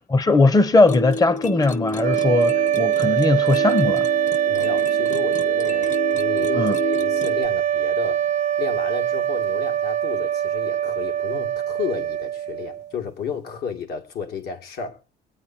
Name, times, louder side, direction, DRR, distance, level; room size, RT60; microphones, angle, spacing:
voice 1, 0.0-4.1 6.5-6.7, left 3 dB, 20° left, 0.9 m, -19 dB
sound 1, 0.9-7.5, left 2 dB, 45° left, 1.4 m, -31 dB
sound 2, 2.0-12.9, right 10 dB, 45° right, 0.6 m, -23 dB
voice 2, 4.4-8.3 8.6-15.0, left 6 dB, 70° left, 2.5 m, -32 dB
22.5 x 9.3 x 2.8 m
cardioid pair, 110°, 17 cm